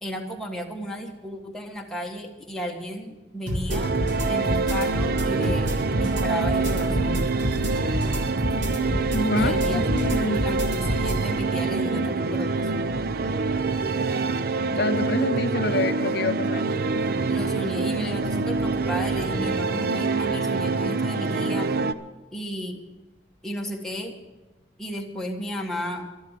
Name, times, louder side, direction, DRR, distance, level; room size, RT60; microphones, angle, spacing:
voice 1, 0.0-4.0 4.3-7.3 9.4-12.9 17.3-21.7 22.3-22.8 23.4-24.1 24.8-26.1, equal, 5° left, -1 dB, 1.6 m, -34 dB
sound 1, 3.5-11.2, equal, 90° right, 2.6 m, -29 dB
sound 2, 3.7-21.9, right 4 dB, 55° right, 0.6 m, -25 dB
voice 2, 9.1-10.4 14.8-16.6, left 3 dB, 60° left, 8 dB, 0.6 m, -27 dB
12.5 x 11.0 x 7.4 m, 1.1 s
head